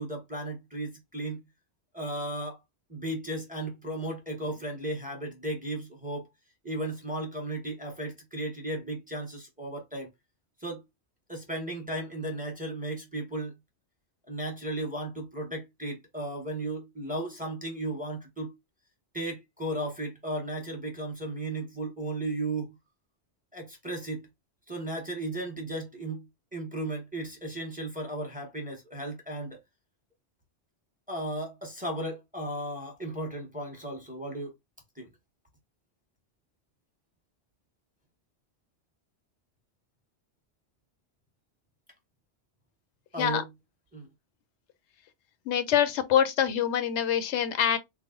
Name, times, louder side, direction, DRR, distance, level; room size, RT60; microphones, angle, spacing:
voice 1, 0.0-1.4 1.9-2.6 2.9-6.2 6.6-10.1 10.6-10.8 11.3-13.5 14.3-18.5 19.1-22.7 23.5-24.3 24.7-26.2 26.5-29.6 31.1-34.5 35.0-35.1 43.1-43.4 43.9-44.1, right 1 dB, 10° right, 1.0 m, -35 dB
voice 2, 45.5-47.8, left 9 dB, 80° left, 0.9 m, -25 dB
3.3 x 2.0 x 3.6 m
omnidirectional pair, 1.2 m